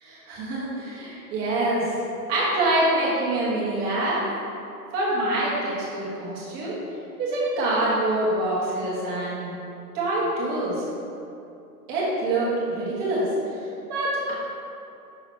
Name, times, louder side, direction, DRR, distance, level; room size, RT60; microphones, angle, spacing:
voice 1, 0.0-1.9 2.3-4.2 4.9-6.7 7.2-9.5 9.9-10.8 11.9-13.2 13.9-14.3, right 1 dB, 20° right, -7 dB, 1.2 m, -25 dB
6.0 x 3.8 x 4.1 m, 2.7 s
hypercardioid pair, 155°, 48 cm